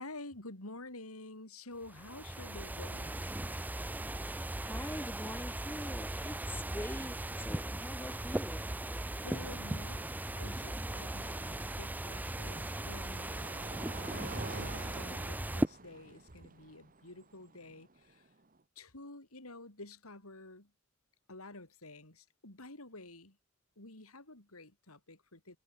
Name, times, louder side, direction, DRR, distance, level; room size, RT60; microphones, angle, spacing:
voice 1, 0.0-3.3 9.2-13.4 14.1-18.3 18.8-20.7 21.3-23.4 23.8-25.6, left 2 dB, 80° left, 5.4 m, -50 dB
sound 1, 1.8-15.7, right 1 dB, 10° right, 0.5 m, -38 dB
voice 2, 4.7-8.7, left 1 dB, 10° left, 2.6 m, -44 dB
sound 2, 11.5-18.6, right 3 dB, 40° right, 2.0 m, -49 dB
head